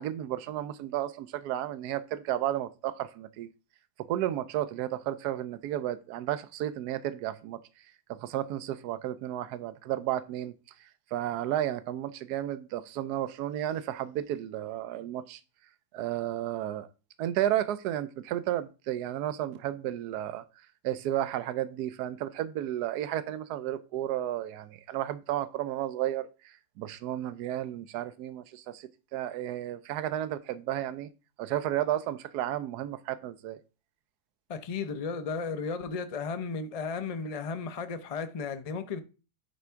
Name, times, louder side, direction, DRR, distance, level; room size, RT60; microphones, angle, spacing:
voice 1, 0.0-3.5 4.1-7.6 8.1-10.5 11.1-15.4 15.9-16.9 17.2-20.4 20.8-31.1 31.4-33.6, right 12 dB, 80° right, 1.2 m, -32 dB
voice 2, 34.5-39.0, left 5 dB, 45° left, 0.4 m, -34 dB
9.5 x 3.5 x 4.4 m
omnidirectional pair, 1.7 m